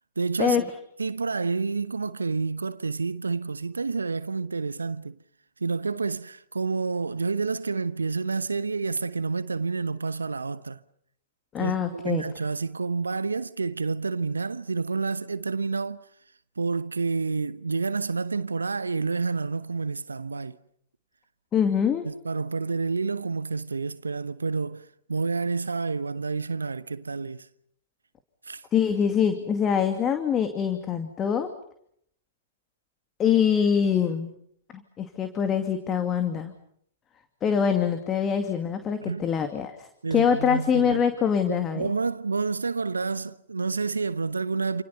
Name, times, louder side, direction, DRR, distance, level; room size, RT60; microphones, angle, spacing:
voice 1, 0.2-0.6 1.0-5.2 5.6-10.8 11.6-16.0 16.6-20.6 22.0-27.5 28.4-28.6 39.0-39.3 40.0-41.0 41.5-44.8, right 4 dB, 80° right, 1.0 m, -29 dB
voice 2, 11.5-12.2 21.5-22.0 28.7-31.5 33.2-34.3 34.7-36.5 37.4-41.9, left 7 dB, 25° left, 2.4 m, -24 dB
29.0 x 28.5 x 5.5 m
figure-of-eight pair, 105°, 0 cm